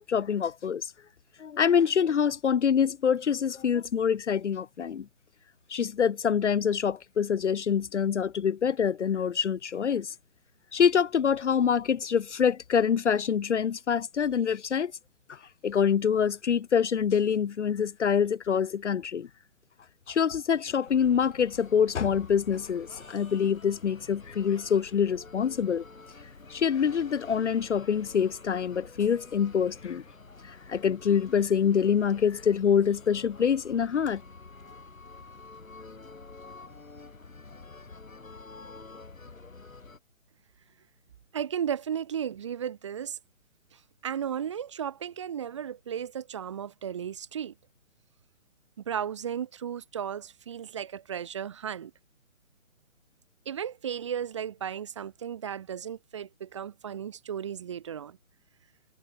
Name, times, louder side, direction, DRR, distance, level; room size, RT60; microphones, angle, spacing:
voice 1, 0.1-0.9 1.4-5.1 5.7-10.1 10.7-14.9 15.3-15.4 15.6-19.3 20.1-25.8 26.5-30.0 30.5-34.2, left 7 dB, 60° left, 0.6 m, -25 dB
sound 1, 20.9-40.0, left 3 dB, 75° left, 4.1 m, -48 dB
voice 2, 41.3-43.2 43.7-47.5 48.9-51.9 53.5-58.2, right 8 dB, 20° right, 0.8 m, -35 dB
figure-of-eight pair, 140°, 41 cm